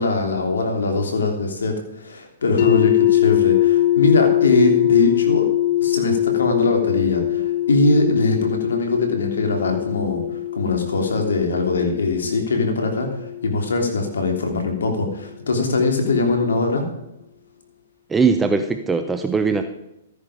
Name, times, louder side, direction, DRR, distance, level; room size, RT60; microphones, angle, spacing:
voice 1, 0.0-5.5 5.8-16.8, left 3 dB, 85° left, 4 dB, 3.1 m, -21 dB
sound 1, 2.6-14.5, left 14 dB, 55° left, 1.7 m, -22 dB
voice 2, 18.1-19.6, right 5 dB, 10° right, 7 dB, 0.8 m, -20 dB
14.0 x 10.0 x 5.1 m, 0.86 s
hypercardioid pair, 130°, 0 cm